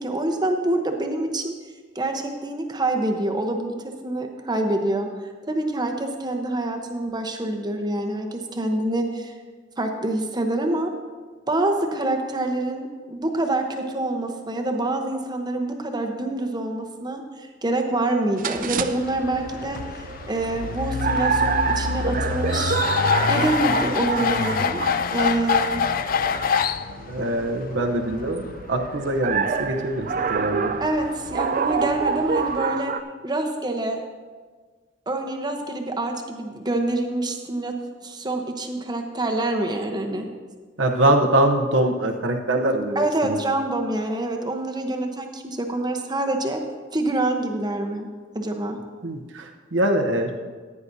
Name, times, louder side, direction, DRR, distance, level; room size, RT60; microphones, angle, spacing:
voice 1, 0.0-1.5 1.9-3.7 4.0-5.1 5.5-9.3 9.8-10.9 11.5-22.8 23.3-24.8 25.1-25.8 30.8-32.9 33.2-34.0 35.1-37.7 38.0-40.3 42.9-46.6 46.9-48.1 48.3-48.8, right 2 dB, 20° right, 3 dB, 0.9 m, -26 dB
sound 1, 18.4-33.0, right 5 dB, 45° right, 0.4 m, -28 dB
sound 2, 18.5-32.6, left 6 dB, 50° left, 0.3 m, -27 dB
voice 2, 27.1-30.7 40.8-43.4 49.0-50.3, right 1 dB, 75° right, 3 dB, 0.9 m, -23 dB
14.5 x 9.5 x 2.7 m, 1.4 s
head